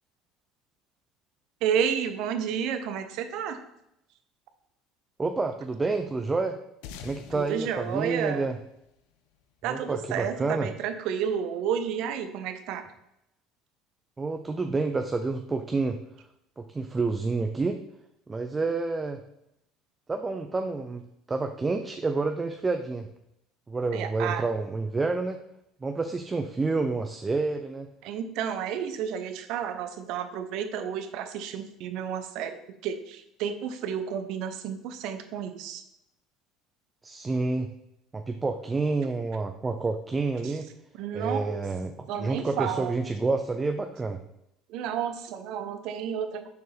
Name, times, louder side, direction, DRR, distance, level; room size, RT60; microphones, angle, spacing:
voice 1, 1.6-3.6 7.3-8.5 9.6-12.8 23.9-24.4 28.0-32.5 32.8-35.8 41.0-41.6 42.1-42.9 44.7-46.5, right 8 dB, 70° right, 8 dB, 0.7 m, -31 dB
voice 2, 5.2-6.6 7.0-8.6 9.7-10.7 14.2-16.0 16.6-17.8 18.3-19.2 20.1-21.0 21.3-23.1 23.7-25.4 25.8-27.9 37.0-37.7 38.1-40.7 41.1-44.2, right 3 dB, 20° right, 6 dB, 0.4 m, -29 dB
sound 1, 6.8-9.6, left 7 dB, 80° left, 0.5 m, -47 dB
6.6 x 4.6 x 3.4 m, 0.81 s
supercardioid pair, 105°, 0 cm